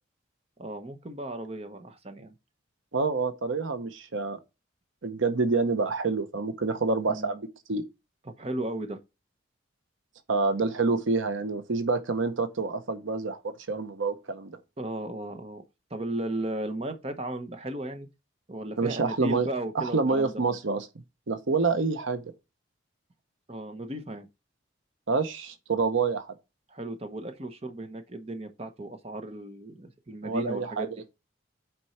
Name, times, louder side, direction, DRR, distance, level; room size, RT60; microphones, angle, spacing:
voice 1, 0.6-2.3 7.1-7.4 8.2-9.0 14.8-15.6 15.9-18.1 18.5-20.4 23.5-24.3 26.7-30.9, right 1 dB, 30° right, 0.9 m, -35 dB
voice 2, 2.9-4.4 5.0-7.8 10.3-14.6 18.8-19.5 19.7-20.9 21.3-22.2 25.1-26.3 30.2-30.9, right 4 dB, 80° right, 0.9 m, -27 dB
7.9 x 4.5 x 4.3 m
head